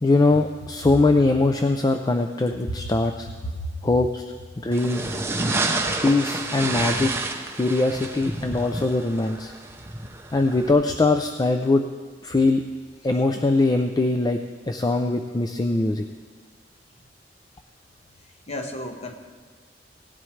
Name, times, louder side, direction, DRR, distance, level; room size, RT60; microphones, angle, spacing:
voice 1, 0.0-3.3 3.8-4.2 4.6-5.2 6.0-7.1 7.6-9.5 10.3-11.8 12.2-12.6 13.0-14.4 14.7-16.0, left 2 dB, 20° left, 6 dB, 0.4 m, -21 dB
voice 2, 3.4-3.9 18.5-19.1, equal, 40° left, 3 dB, 1.2 m, -33 dB
sound 1, 4.7-10.7, right 2 dB, 15° right, 0.7 m, -29 dB
17.5 x 11.0 x 3.2 m, 1.5 s
head